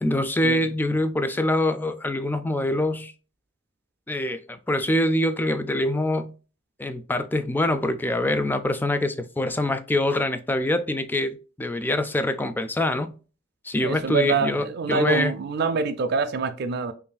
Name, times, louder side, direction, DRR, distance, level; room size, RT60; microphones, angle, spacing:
voice 1, 0.0-3.1 4.1-6.3 6.8-13.1 13.6-15.3, left 1 dB, 10° left, 0.3 m, -24 dB
voice 2, 13.8-16.9, right 4 dB, 55° right, 0.4 m, -25 dB
5.4 x 2.6 x 2.2 m
head